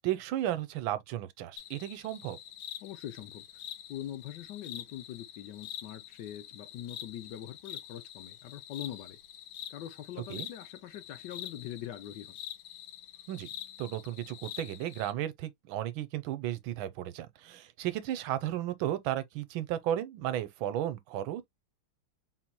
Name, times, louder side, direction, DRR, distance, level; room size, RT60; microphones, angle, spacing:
voice 1, 0.0-2.4 10.3-10.5 13.3-13.5 13.8-21.5, right 12 dB, 85° right, 1.4 m, -34 dB
sound 1, 1.6-15.1, left 11 dB, 90° left, 1.5 m, -46 dB
voice 2, 2.8-3.4 3.9-9.2 9.7-12.4, left 11 dB, 75° left, 1.1 m, -43 dB
4.2 x 2.0 x 4.5 m
omnidirectional pair, 2.2 m